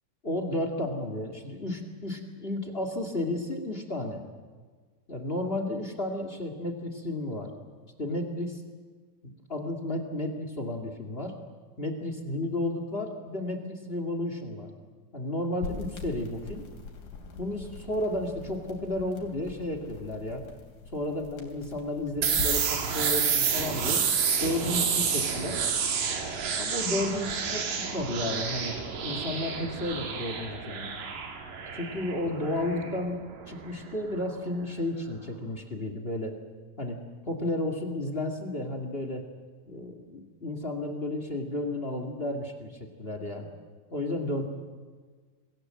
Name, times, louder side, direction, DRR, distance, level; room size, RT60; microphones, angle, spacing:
voice 1, 0.2-4.2 5.1-7.5 8.0-8.6 9.2-11.3 11.8-14.7 15.1-16.6 17.4-20.4 20.9-24.0 24.4-25.6 26.6-28.8 29.0-30.9 31.7-33.2 33.5-36.3 36.8-37.0 37.3-39.2 39.7-43.5 43.9-44.5, left 1 dB, 20° left, 6 dB, 2.1 m, -32 dB
sound 1, 15.6-22.6, left 4 dB, 85° left, 4.7 m, -42 dB
sound 2, 22.2-33.9, right 6 dB, 90° right, 3.9 m, -29 dB
27.0 x 20.5 x 7.7 m, 1.5 s
omnidirectional pair, 3.7 m